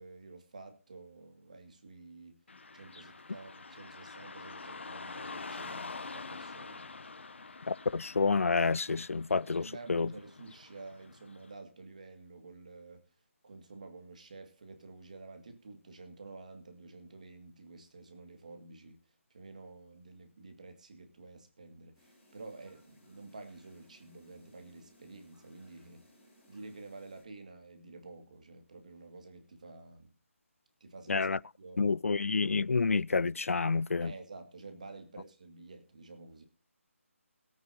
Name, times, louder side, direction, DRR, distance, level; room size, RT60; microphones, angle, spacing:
voice 1, 0.0-2.4 2.7-6.8 9.6-13.0 13.4-19.0 19.3-26.1 26.5-30.1 30.8-31.3 31.6-31.8 34.0-36.4, right 3 dB, 30° right, 2.0 m, -50 dB
Car passing by / Traffic noise roadway noise, 2.5-11.5, left 4 dB, 55° left, 1.7 m, -46 dB
voice 2, 7.7-10.1 31.1-31.4 31.8-34.1, left 4 dB, 70° left, 0.4 m, -29 dB
sound 1, 21.9-27.2, equal, ahead, 4.4 m, -63 dB
22.0 x 8.9 x 2.7 m
figure-of-eight pair, 180°, 8 cm